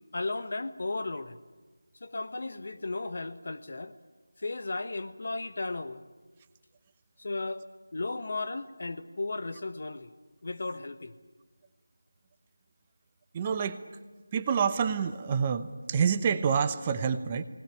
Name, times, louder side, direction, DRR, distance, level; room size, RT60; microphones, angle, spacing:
voice 1, 0.1-1.4 2.0-3.9 4.4-6.0 7.2-7.7 7.9-10.1 10.4-11.1, left 3 dB, 50° left, 9 dB, 1.3 m, -35 dB
voice 2, 13.3-13.8 14.3-17.4, right 6 dB, 20° right, 9 dB, 0.9 m, -27 dB
20.5 x 19.0 x 9.9 m, 1.3 s
figure-of-eight pair, 165°, 0 cm